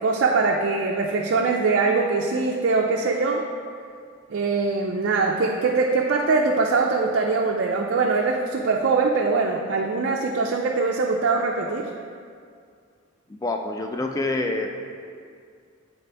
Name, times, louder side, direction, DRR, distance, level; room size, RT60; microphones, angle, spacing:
voice 1, 0.0-3.5 4.3-11.9, right 4 dB, 55° right, 0 dB, 0.4 m, -22 dB
voice 2, 13.3-14.7, left 2 dB, 15° left, 3 dB, 0.3 m, -27 dB
8.1 x 4.1 x 3.3 m, 2.2 s
head